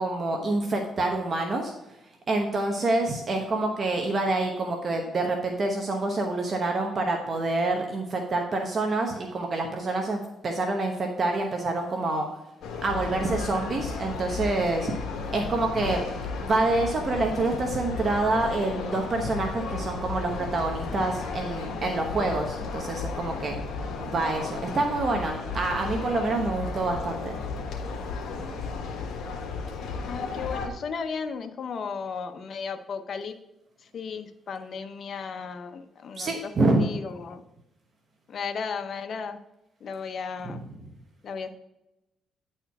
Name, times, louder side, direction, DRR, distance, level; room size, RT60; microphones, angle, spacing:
voice 1, 0.0-1.7 2.3-12.3 12.8-14.9 15.3-16.0 16.4-23.6 24.0-27.4 36.1-36.9 40.4-40.9, right 2 dB, 45° right, 3 dB, 1.0 m, -27 dB
sound 1, 12.6-30.7, left 4 dB, 75° left, 1.4 m, -34 dB
voice 2, 30.1-33.4 33.9-36.5 36.8-37.4 38.3-39.4 39.8-40.6 41.2-41.5, left 5 dB, 55° left, 9 dB, 0.7 m, -35 dB
9.8 x 4.4 x 4.7 m, 0.95 s
cardioid pair, 90°, 0 cm